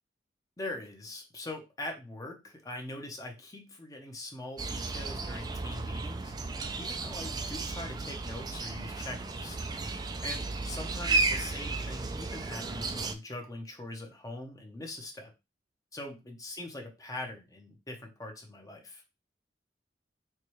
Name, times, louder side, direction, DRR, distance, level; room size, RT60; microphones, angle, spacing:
voice 1, 0.6-6.3 6.8-9.6 10.2-15.3 15.9-19.0, left 2 dB, 20° left, 2 dB, 0.7 m, -42 dB
sound 1, 4.6-13.1, right 3 dB, 25° right, 0.3 m, -34 dB
4.6 x 2.3 x 3.0 m, 0.26 s
head